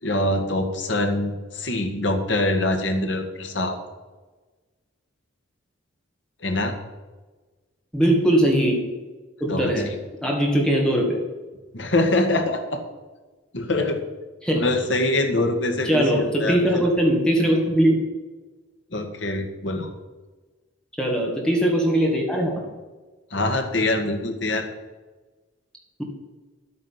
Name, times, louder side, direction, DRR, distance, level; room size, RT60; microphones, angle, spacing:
voice 1, 0.0-3.8 6.4-6.8 9.5-9.9 11.7-12.8 13.5-14.0 14.5-16.8 18.9-19.9 23.3-24.7, left 2 dB, 65° left, 4 dB, 1.8 m, -24 dB
voice 2, 7.9-8.8 9.4-9.9 10.2-11.2 14.4-14.7 15.8-18.0 21.0-22.7, right 1 dB, 5° left, -1 dB, 2.0 m, -20 dB
11.5 x 8.6 x 5.9 m, 1.3 s
head